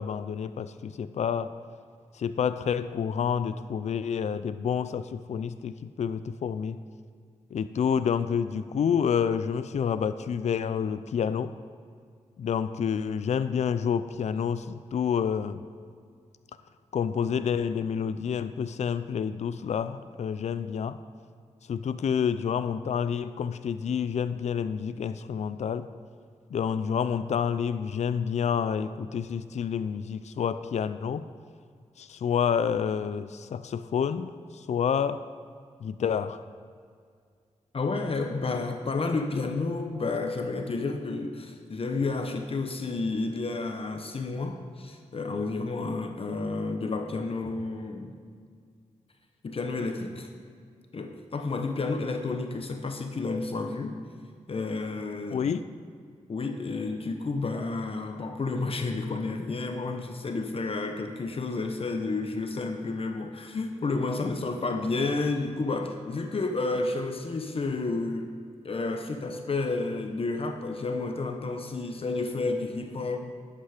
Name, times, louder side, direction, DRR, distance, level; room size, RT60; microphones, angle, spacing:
voice 1, 0.0-1.5 2.1-6.8 7.5-11.5 12.4-15.6 16.9-21.0 21.7-25.9 26.5-31.3 32.0-35.2 35.8-36.4 55.3-55.7, left 7 dB, 65° left, 12 dB, 0.4 m, -28 dB
voice 2, 37.7-48.1 49.4-50.3 50.9-54.0 54.5-55.5 56.3-68.4 68.6-73.2, left 3 dB, 50° left, 5 dB, 1.0 m, -31 dB
11.5 x 8.3 x 5.0 m, 2.1 s
cardioid pair, 65°, 12 cm